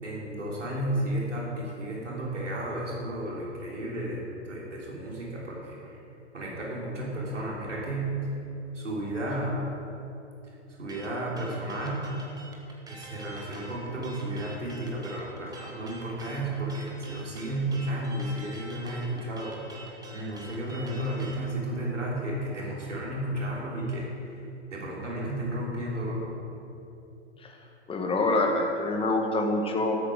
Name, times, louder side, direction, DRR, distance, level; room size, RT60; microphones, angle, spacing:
voice 1, 0.0-6.0 6.3-8.1 8.7-9.6 10.8-12.1 12.9-24.4 24.7-26.2, right 1 dB, 85° right, -4 dB, 3.9 m, -33 dB
sound 1, 10.9-21.4, right 2 dB, 10° right, 2.0 m, -46 dB
voice 2, 27.9-30.0, left 2 dB, 15° left, 2 dB, 1.8 m, -26 dB
13.5 x 12.5 x 5.0 m, 2.8 s
figure-of-eight pair, 110°, 36 cm